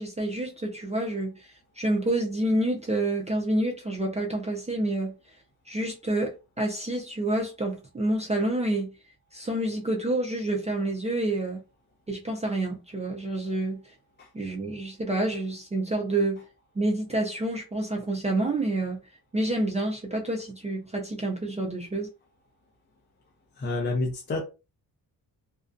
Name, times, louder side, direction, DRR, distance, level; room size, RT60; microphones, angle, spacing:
voice 1, 0.0-1.5 1.8-5.1 5.7-8.9 9.3-11.6 12.1-13.8 14.3-16.4 16.8-19.0 19.3-22.1, right 1 dB, 20° right, 0.4 m, -28 dB
voice 2, 23.6-24.4, left 2 dB, 25° left, 0.6 m, -28 dB
2.4 x 2.2 x 2.4 m
cardioid pair, 120°, 39 cm